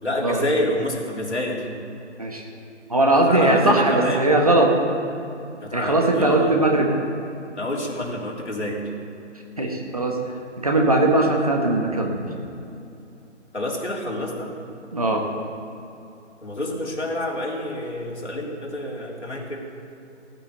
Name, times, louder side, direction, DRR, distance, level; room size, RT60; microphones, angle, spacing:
voice 1, 0.0-1.7 3.3-4.3 5.6-6.6 7.6-8.8 13.5-14.5 16.4-19.6, left 1 dB, 70° left, -2 dB, 3.6 m, -28 dB
voice 2, 2.9-4.7 5.7-6.9 9.6-10.2 10.6-12.2 14.9-15.2, right 2 dB, 30° right, 1 dB, 1.3 m, -19 dB
16.5 x 9.0 x 6.9 m, 2.7 s
figure-of-eight pair, 175°, 36 cm